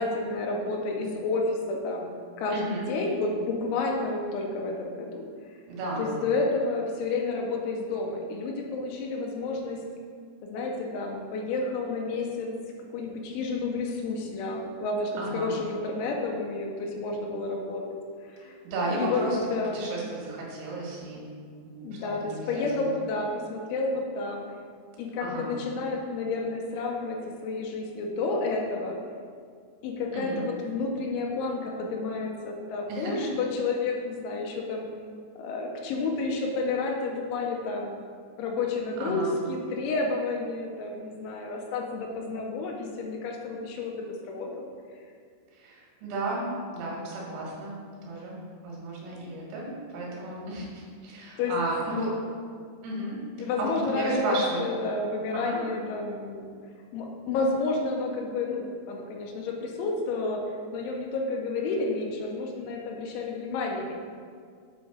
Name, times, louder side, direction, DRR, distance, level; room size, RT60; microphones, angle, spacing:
voice 1, 0.0-5.2 6.0-9.8 10.4-12.5 12.9-17.8 18.3-18.5 18.9-19.2 19.5-19.8 21.8-24.5 25.0-29.0 29.8-34.9 35.4-38.0 38.4-44.7 51.4-51.5 51.9-52.2 53.4-56.5 56.9-60.4 60.7-63.9, left 3 dB, 90° left, 1 dB, 3.2 m, -30 dB
voice 2, 2.5-2.9 5.7-6.2 15.2-15.6 18.4-19.4 19.7-21.3 21.6-22.9 25.2-25.6 30.1-30.5 32.9-33.3 39.0-39.3 45.5-52.1 52.8-54.6 55.3-55.6, right 2 dB, 70° right, -4 dB, 3.6 m, -33 dB
8.3 x 3.5 x 4.9 m, 2.1 s
omnidirectional pair, 5.5 m